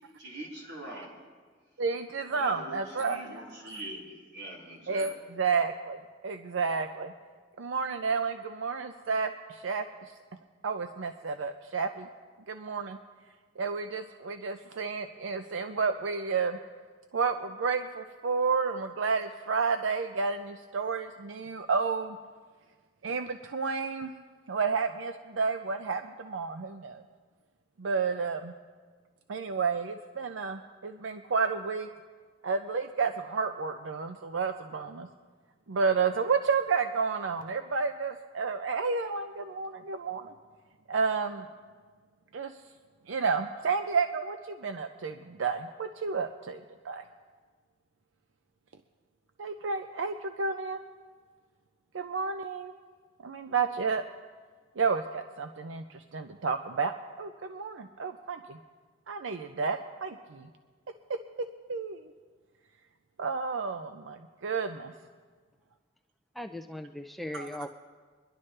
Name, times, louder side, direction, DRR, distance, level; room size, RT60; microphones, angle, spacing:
voice 1, 0.2-1.2 2.3-5.1, right 1 dB, 60° right, -4 dB, 3.6 m, -43 dB
voice 2, 1.8-3.2 4.9-7.1 7.6-9.8 10.6-12.1 12.5-13.0 13.6-16.6 17.1-22.2 23.0-24.1 24.5-27.0 27.8-28.5 29.3-31.9 32.4-35.1 35.7-40.3 40.9-41.5 42.3-42.5 43.1-47.0 49.4-50.8 51.9-52.7 53.2-54.0 54.8-56.9 57.2-58.6 59.1-60.5 61.7-62.0 63.2-64.9 67.3-67.5, right 5 dB, 90° right, 7 dB, 0.5 m, -31 dB
voice 3, 66.3-67.7, left 1 dB, ahead, 6 dB, 0.4 m, -38 dB
24.0 x 11.0 x 3.3 m, 1.5 s
head